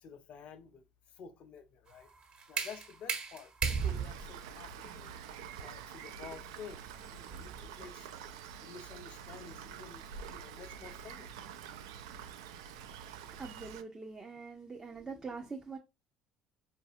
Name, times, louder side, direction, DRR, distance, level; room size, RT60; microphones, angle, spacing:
voice 1, 0.0-0.8 1.1-2.1 2.5-5.1 5.6-8.2 8.6-11.4, left 6 dB, 50° left, 0.6 m, -51 dB
sound 1, 1.9-7.6, right 6 dB, 40° right, 1.3 m, -38 dB
Rain, 3.8-13.8, right 7 dB, 70° right, 0.4 m, -47 dB
voice 2, 13.3-15.8, right 4 dB, 25° right, 0.6 m, -44 dB
4.7 x 2.6 x 2.4 m
figure-of-eight pair, 60°, 3 cm